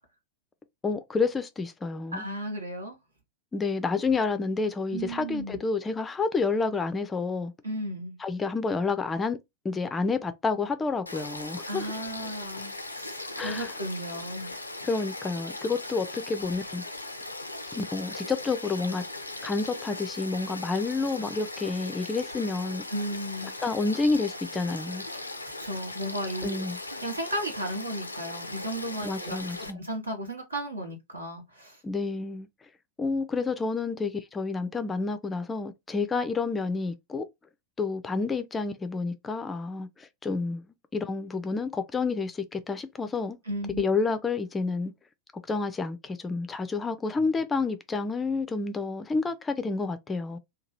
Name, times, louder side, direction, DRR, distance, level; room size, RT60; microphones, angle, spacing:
voice 1, 0.8-2.2 3.5-7.5 8.2-9.4 9.6-11.9 13.4-13.7 14.8-16.8 17.7-19.0 19.4-22.8 23.6-25.0 26.4-26.8 29.0-29.8 31.8-32.5 33.0-37.3 37.8-40.6 40.9-43.4 43.8-44.9 45.5-50.4, left 4 dB, 15° left, 0.4 m, -29 dB
voice 2, 2.1-3.0 4.9-5.6 7.6-8.2 11.6-14.5 22.9-23.5 25.1-26.7 27.0-29.4 29.7-31.8 43.5-43.8, right 1 dB, 80° right, 1.1 m, -35 dB
Frog / Stream, 11.1-29.7, left 2 dB, 85° left, 0.4 m, -39 dB
2.8 x 2.2 x 3.0 m
figure-of-eight pair, 90°, 0 cm